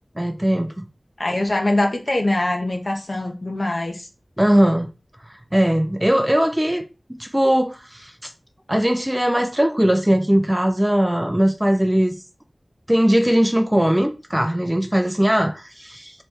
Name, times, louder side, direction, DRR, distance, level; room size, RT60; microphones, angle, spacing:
voice 1, 0.2-0.8 4.4-4.9 5.5-8.3 8.7-12.2 12.9-16.1, equal, 15° right, 0.6 m, -19 dB
voice 2, 1.2-4.1, left 1 dB, 55° left, 1.1 m, -23 dB
3.3 x 3.2 x 4.4 m
wide cardioid pair, 60°, 0 cm